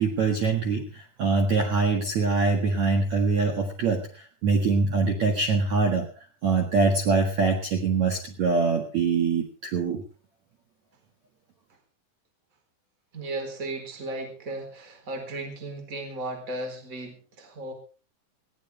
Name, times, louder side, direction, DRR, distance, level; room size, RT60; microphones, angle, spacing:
voice 1, 0.0-6.1 6.4-10.0, right 4 dB, 55° right, 3 dB, 2.2 m, -24 dB
voice 2, 13.1-17.7, right 2 dB, 20° right, 4 dB, 3.9 m, -35 dB
20.0 x 17.5 x 3.4 m, 0.36 s
omnidirectional pair, 5.6 m